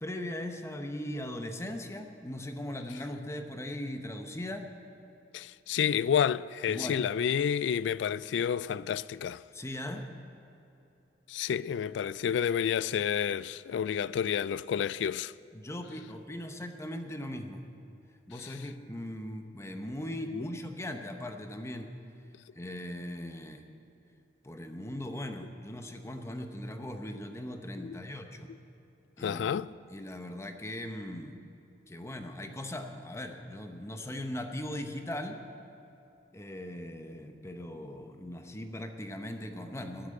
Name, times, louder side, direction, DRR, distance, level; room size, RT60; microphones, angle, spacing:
voice 1, 0.0-4.7 6.7-7.0 9.5-10.1 15.5-17.6 18.3-21.9 22.5-23.6 24.4-28.5 29.2-29.6 29.9-31.4 31.9-35.4 36.3-40.1, left 1 dB, 15° left, 0.9 m, -39 dB
voice 2, 5.3-9.4 11.3-15.3 20.3-20.4 27.8-28.0 29.2-29.7, left 8 dB, 80° left, 0.3 m, -30 dB
13.0 x 10.0 x 8.8 m
head